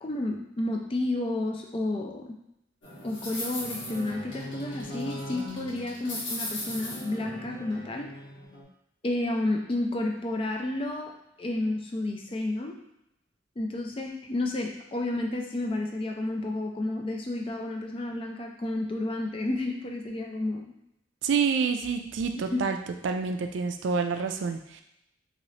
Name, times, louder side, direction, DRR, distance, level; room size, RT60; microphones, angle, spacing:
voice 1, 0.0-2.4 3.0-8.1 9.0-11.1 11.4-12.8 13.6-20.7 22.5-22.7, left 2 dB, 30° left, 2 dB, 0.4 m, -31 dB
sound 1, 2.8-8.6, left 1 dB, 80° left, 1.2 m, -38 dB
voice 2, 21.2-22.8 23.0-24.8, right 5 dB, 75° right, 6 dB, 0.3 m, -28 dB
3.1 x 2.9 x 2.8 m, 0.83 s
head